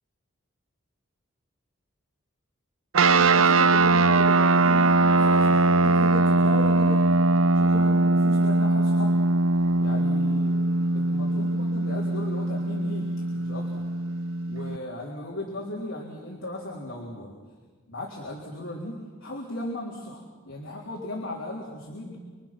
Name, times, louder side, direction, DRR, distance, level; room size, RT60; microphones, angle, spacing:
sound 1, 2.9-14.8, right 2 dB, 80° right, 0.7 m, -21 dB
voice 1, 3.0-7.0 7.5-9.2 9.8-13.1 13.3-13.9 14.5-17.4 17.9-22.2, left 1 dB, 75° left, -2 dB, 3.6 m, -36 dB
27.0 x 24.5 x 6.0 m, 1.5 s
head